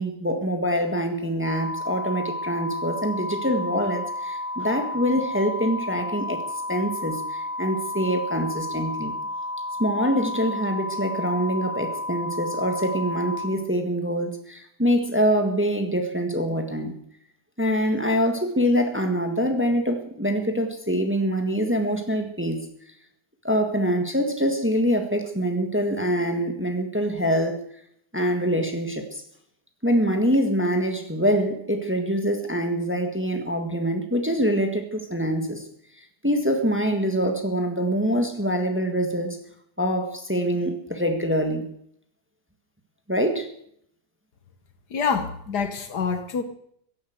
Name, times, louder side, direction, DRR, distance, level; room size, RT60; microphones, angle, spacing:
voice 1, 0.0-6.4 6.7-9.1 9.8-16.9 17.6-22.6 23.4-27.6 28.1-29.2 29.8-35.7 36.2-39.4 39.8-41.7 43.1-43.5, equal, 5° right, 1.5 m, -24 dB
sound 1, 1.4-13.5, left 1 dB, 75° right, 4.4 m, -32 dB
voice 2, 44.9-46.4, left 5 dB, 70° left, 1.8 m, -26 dB
15.5 x 11.0 x 8.0 m
omnidirectional pair, 1.8 m